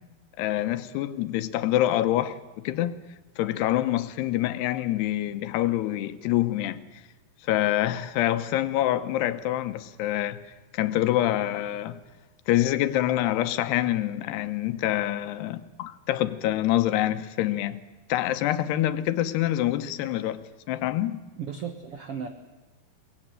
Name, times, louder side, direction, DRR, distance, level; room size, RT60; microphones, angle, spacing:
voice 1, 0.4-2.9 3.4-6.8 7.5-10.4 10.7-12.0 12.5-17.8 18.1-20.4 20.7-21.2, left 13 dB, 90° left, 3.0 m, -26 dB
voice 2, 21.4-22.3, right 7 dB, 75° right, 1.3 m, -35 dB
22.5 x 19.5 x 9.0 m
omnidirectional pair, 4.6 m